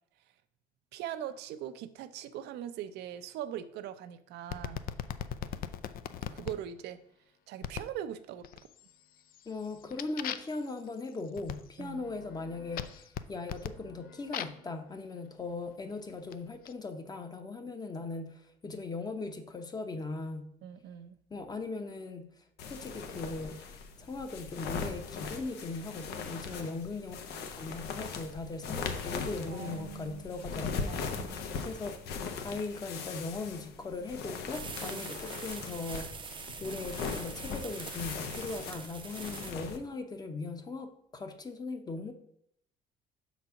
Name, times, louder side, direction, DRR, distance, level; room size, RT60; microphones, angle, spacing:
voice 1, 0.9-4.8 6.3-7.0 7.5-8.5 11.8-12.0 20.6-21.2 26.5-26.7 29.5-30.4 30.9-31.5 34.9-35.0, right 10 dB, 80° right, 11 dB, 0.5 m, -41 dB
sound 1, 4.5-6.6 7.6-8.0 8.4-8.9 9.3-14.7 15.5-16.7, left 10 dB, 60° left, 0.4 m, -40 dB
voice 2, 9.5-20.5 21.3-22.3 22.6-23.6 24.0-31.3 31.6-36.3 36.6-42.1, left 3 dB, 25° left, 7 dB, 0.8 m, -39 dB
sound 2, 22.6-39.8, left 5 dB, 75° left, 0.8 m, -40 dB
sound 3, 34.5-39.5, right 6 dB, 30° right, 0.6 m, -44 dB
6.0 x 4.0 x 5.7 m, 0.72 s
cardioid pair, 110°, 17 cm